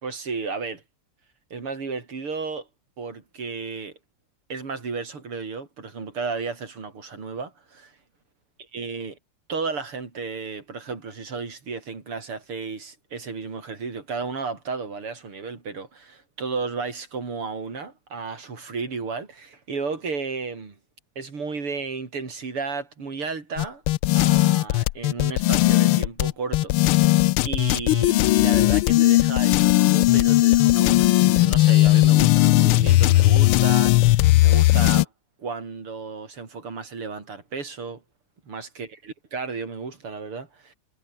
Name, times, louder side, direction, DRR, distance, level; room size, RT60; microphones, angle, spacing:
voice 1, 0.0-0.8 1.5-2.7 3.0-3.9 4.5-7.9 8.7-9.2 9.5-20.8 21.2-23.8 24.1-27.1 27.4-35.1 35.4-38.0 38.5-40.7, right 4 dB, 85° right, 4.9 m, -33 dB
sound 1, 23.6-35.1, left 17 dB, 85° left, 1.5 m, -18 dB
omnidirectional pair, 2.4 m